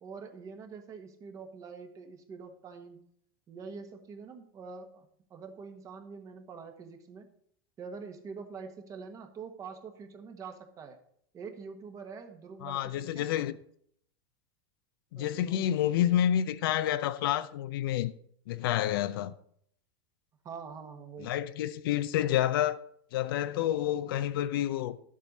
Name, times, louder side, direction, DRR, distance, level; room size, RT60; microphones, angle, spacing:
voice 1, 0.0-3.0 3.5-7.3 7.8-11.0 11.3-13.3 15.2-15.7 20.4-21.3, right 5 dB, 30° right, 1.3 m, -45 dB
voice 2, 12.6-13.5 15.1-18.1 18.5-19.3 21.2-22.8 23.1-25.0, left 11 dB, 70° left, 0.6 m, -29 dB
11.0 x 7.5 x 4.1 m
supercardioid pair, 135°, 12 cm